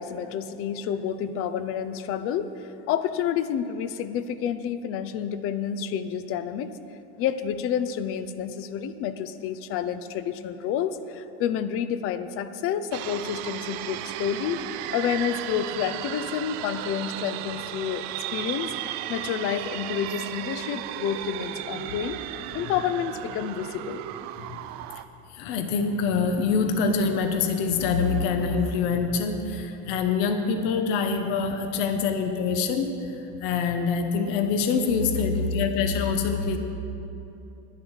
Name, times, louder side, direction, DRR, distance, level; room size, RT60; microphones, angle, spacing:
voice 1, 0.0-6.8 7.2-14.6 14.9-18.1 18.3-22.2 22.5-24.0, left 8 dB, 45° left, 12 dB, 0.7 m, -29 dB
sound 1, 12.9-25.0, right 13 dB, 55° right, 0.6 m, -35 dB
voice 2, 25.3-36.6, left 5 dB, 70° left, 6 dB, 1.1 m, -25 dB
11.5 x 9.8 x 6.4 m, 2.9 s
supercardioid pair, 135°, 32 cm